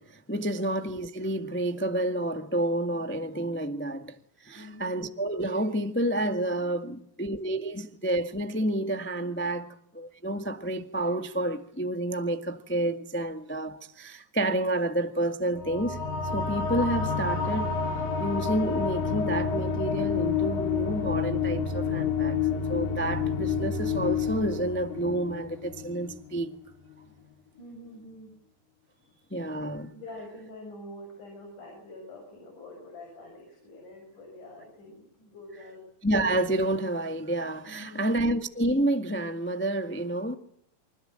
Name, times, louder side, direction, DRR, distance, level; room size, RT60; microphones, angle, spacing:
voice 1, 0.0-4.1 4.4-9.7 9.9-16.0 16.3-17.8 18.2-22.4 22.7-26.5 29.3-29.9 36.0-40.3, right 1 dB, 15° left, 0.3 m, -29 dB
voice 2, 4.5-5.1 27.6-28.3 29.0-29.5 29.9-35.8 37.7-38.3, left 1 dB, 65° left, 8.1 m, -46 dB
sound 1, 15.6-26.5, left 6 dB, 90° left, 4.3 m, -29 dB
28.0 x 25.5 x 7.8 m
omnidirectional pair, 3.9 m